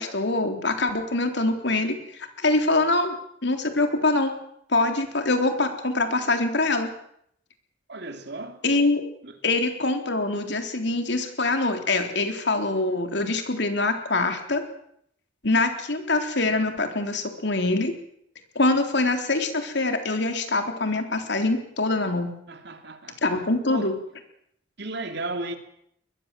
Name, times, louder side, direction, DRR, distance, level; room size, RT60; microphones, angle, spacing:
voice 1, 0.0-2.0 2.4-3.2 3.4-4.3 4.7-6.9 8.6-9.0 9.4-14.6 15.4-17.9 18.6-22.3 23.2-23.9, left 2 dB, 65° left, 3.7 m, -24 dB
voice 2, 7.9-8.6 9.2-9.4 22.5-23.2 23.7-24.0 24.8-25.5, right 2 dB, 60° right, 3.0 m, -34 dB
22.5 x 21.0 x 7.7 m
head